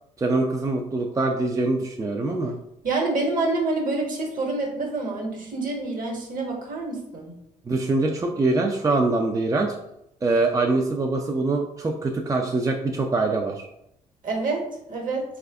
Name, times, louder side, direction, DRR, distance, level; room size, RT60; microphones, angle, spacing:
voice 1, 0.2-2.6 7.7-9.8 10.2-13.7, right 3 dB, 20° right, 2 dB, 0.4 m, -24 dB
voice 2, 2.8-7.3 14.2-14.6 14.9-15.2, right 3 dB, 55° right, 1 dB, 1.2 m, -27 dB
3.3 x 2.4 x 3.4 m, 0.80 s
supercardioid pair, 60°, 16 cm